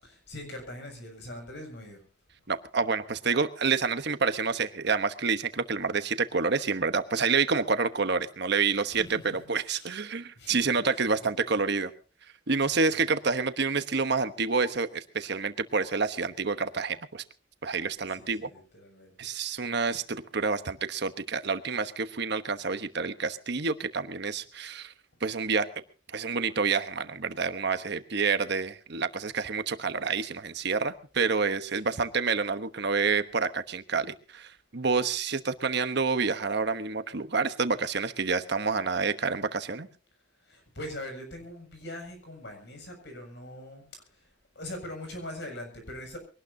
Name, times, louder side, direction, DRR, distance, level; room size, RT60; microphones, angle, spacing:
voice 1, 0.0-2.0 8.9-9.1 9.4-9.9 10.3-11.6 12.6-13.1 18.1-19.3 40.4-44.3 44.5-46.2, left 1 dB, 65° left, 6.9 m, -42 dB
voice 2, 2.5-11.9 12.5-17.2 17.6-18.5 19.2-24.9 25.2-25.7 26.1-39.9, right 4 dB, 60° right, 1.1 m, -28 dB
23.0 x 18.5 x 2.8 m
head